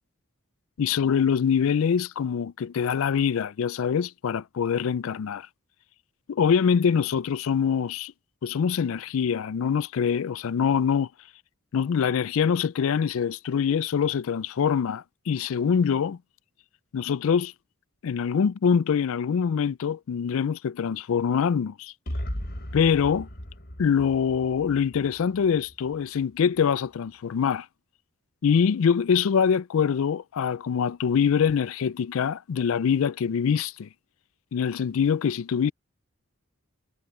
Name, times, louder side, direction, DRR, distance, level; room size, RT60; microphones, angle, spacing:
voice 1, 0.8-5.5 6.3-8.1 8.4-11.1 11.7-16.2 16.9-17.5 18.0-21.9 22.7-23.3 23.8-27.7 28.4-33.9 34.5-35.7, left 7 dB, 70° left, 0.4 m, -24 dB
sound 1, 22.1-25.9, equal, 45° left, 4.2 m, -37 dB
head